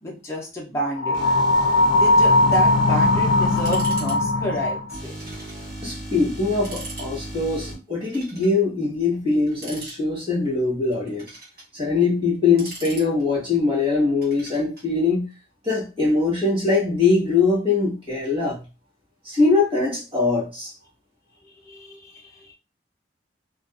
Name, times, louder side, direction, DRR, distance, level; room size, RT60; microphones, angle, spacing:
voice 1, 0.0-1.3 1.9-5.1 21.4-22.5, equal, 15° left, -2 dB, 0.6 m, -30 dB
sound 1, 1.0-4.9, left 2 dB, 85° left, 0.4 m, -19 dB
sound 2, 1.1-3.8 4.9-7.7, equal, 15° right, 0.8 m, -37 dB
sound 3, 3.6-4.2 4.4-4.5 5.2-5.6 6.0-6.1 6.5-7.1 8.0-8.6 9.5-10.3 10.9-11.7 12.3-13.5 14.2-14.9, right 2 dB, 50° right, 1.3 m, -40 dB
voice 2, 5.8-11.4 11.7-15.3 15.6-18.6 19.2-20.7, left 3 dB, 30° right, -4 dB, 1.3 m, -22 dB
2.4 x 2.4 x 2.4 m, 0.30 s
head